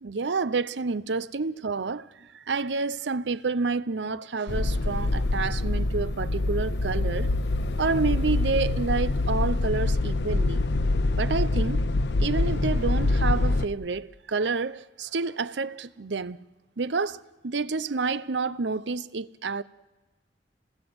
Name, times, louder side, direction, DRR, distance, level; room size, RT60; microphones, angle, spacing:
voice 1, 0.0-7.3 7.8-10.6 11.1-11.8 12.2-16.5 16.8-19.6, right 4 dB, 75° right, 0.7 m, -29 dB
sound 1, 4.5-13.7, left 2 dB, 70° left, 0.8 m, -25 dB
28.0 x 19.5 x 7.9 m
head